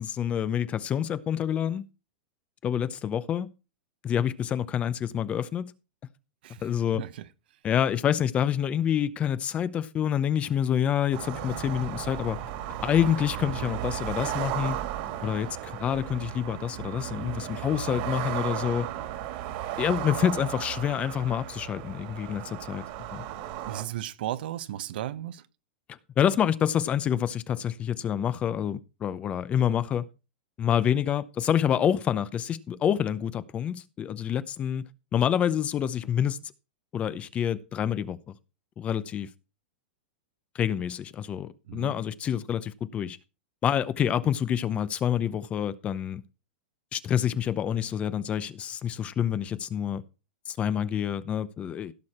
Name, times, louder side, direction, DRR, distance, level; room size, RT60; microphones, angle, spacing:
voice 1, 0.0-1.8 2.6-3.5 4.0-5.7 6.6-7.0 7.6-12.4 12.8-14.8 15.2-18.9 19.8-22.8 23.1-23.2 26.2-30.1 30.6-34.8 35.1-36.4 36.9-38.2 38.8-39.3 40.5-43.2 43.6-46.2 46.9-50.0 50.5-51.9, left 9 dB, 25° left, 0.7 m, -27 dB
voice 2, 6.9-7.3 23.7-25.5 41.7-41.9, right 12 dB, 70° right, 1.1 m, -35 dB
sound 1, 11.1-23.8, right 12 dB, 50° right, 2.3 m, -35 dB
16.0 x 6.4 x 4.3 m
supercardioid pair, 140°, 5 cm